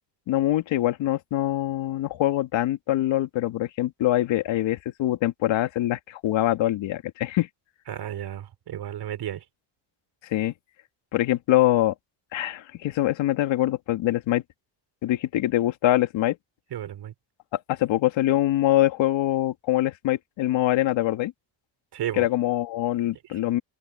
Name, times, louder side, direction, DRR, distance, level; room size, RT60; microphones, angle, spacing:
voice 1, 0.3-7.5 10.3-10.5 11.1-11.9 12.3-14.4 15.0-16.4 17.7-21.3 22.1-23.6, left 14 dB, 90° left, 2.2 m, -24 dB
voice 2, 7.9-9.4 16.7-17.1 21.9-22.3, right 11 dB, 60° right, 4.0 m, -33 dB
open air
cardioid pair, 145°, 44 cm